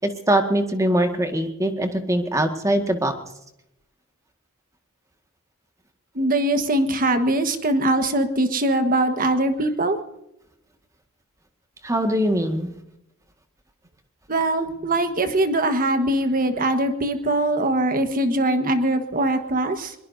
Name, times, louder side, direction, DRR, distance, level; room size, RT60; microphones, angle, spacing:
voice 1, 0.0-3.1 11.8-12.7, right 1 dB, 15° right, 5 dB, 1.8 m, -22 dB
voice 2, 6.1-10.0 14.3-19.9, right 1 dB, 45° right, 8 dB, 1.4 m, -22 dB
23.0 x 22.0 x 2.7 m, 0.84 s
head